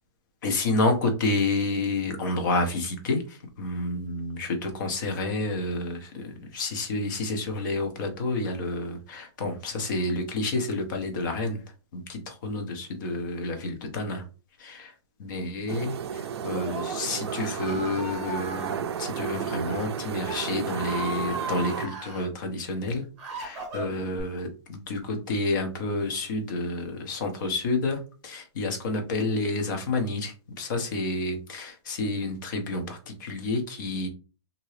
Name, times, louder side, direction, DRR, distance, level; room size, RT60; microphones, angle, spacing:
voice 1, 0.4-11.6 11.9-14.2 14.6-14.9 15.2-23.1 23.3-34.1, left 2 dB, 40° left, 4 dB, 0.8 m, -29 dB
sound 1, 15.7-21.9, right 7 dB, 60° right, 0.4 m, -33 dB
Screaming, 16.4-18.8 19.5-19.9 20.2-22.3 22.8-24.2, right 2 dB, 30° right, 1.1 m, -37 dB
2.8 x 2.7 x 3.1 m, 0.35 s
hypercardioid pair, 180°, 15 cm